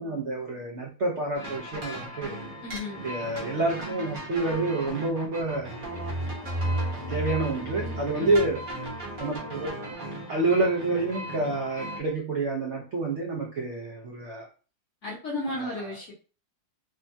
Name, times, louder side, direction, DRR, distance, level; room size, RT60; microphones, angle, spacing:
voice 1, 0.0-2.4 3.0-5.8 6.7-8.7 9.2-9.9 10.3-14.5 15.5-15.9, right 2 dB, 75° right, -1 dB, 0.6 m, -28 dB
sound 1, 1.3-12.0, right 1 dB, 40° right, 0.8 m, -38 dB
voice 2, 2.6-3.0 7.8-8.4 15.0-16.1, left 2 dB, 50° left, -4 dB, 1.0 m, -34 dB
sound 2, 5.6-9.2, right 1 dB, 70° left, 1.3 m, -33 dB
3.4 x 2.1 x 2.6 m, 0.36 s
omnidirectional pair, 2.0 m